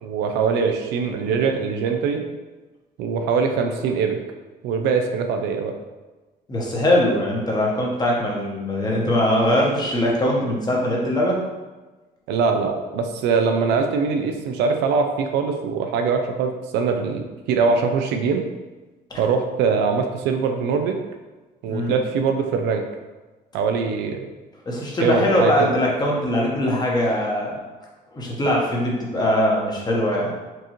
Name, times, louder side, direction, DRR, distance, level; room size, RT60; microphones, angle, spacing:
voice 1, 0.0-2.2 3.0-4.2 4.6-5.7 12.3-18.5 19.2-21.0 21.6-22.8 23.5-24.2 25.0-25.7, right 5 dB, 85° right, 5 dB, 0.5 m, -22 dB
voice 2, 6.5-11.4 19.1-19.2 21.7-22.0 24.7-27.6 28.1-30.3, left 1 dB, 25° left, -3 dB, 1.1 m, -21 dB
4.5 x 2.6 x 3.0 m, 1.2 s
cardioid pair, 110°, 17 cm